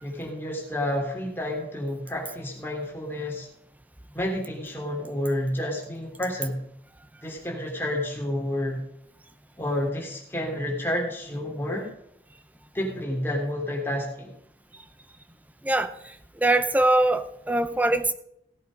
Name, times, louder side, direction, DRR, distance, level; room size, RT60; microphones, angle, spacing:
voice 1, 0.0-3.5 4.1-6.6 7.2-8.8 9.6-11.9 12.7-14.3, left 1 dB, 15° left, -1 dB, 3.2 m, -30 dB
voice 2, 16.4-18.1, right 2 dB, 10° right, 10 dB, 0.7 m, -22 dB
17.0 x 8.1 x 5.2 m, 0.75 s
head